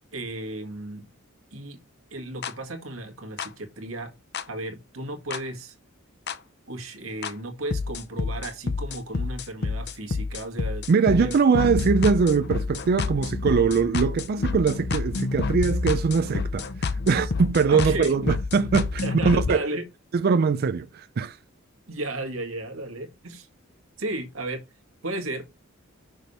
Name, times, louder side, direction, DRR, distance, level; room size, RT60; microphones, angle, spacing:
voice 1, 0.1-1.1 1.5-1.8 2.1-4.1 4.5-5.8 6.7-11.3 17.7-18.1 19.0-19.9 21.9-23.5 24.0-24.6 25.0-25.4, right 2 dB, 90° right, 1.8 m, -34 dB
sound 1, 2.4-2.5 3.4-3.5 4.3-4.4 5.3-5.4 6.3-6.4 7.2-7.3 7.7-19.5, left 4 dB, 55° left, 0.6 m, -28 dB
voice 2, 10.9-19.6 20.1-21.4, right 5 dB, 50° right, 0.4 m, -22 dB
6.3 x 3.4 x 5.4 m
head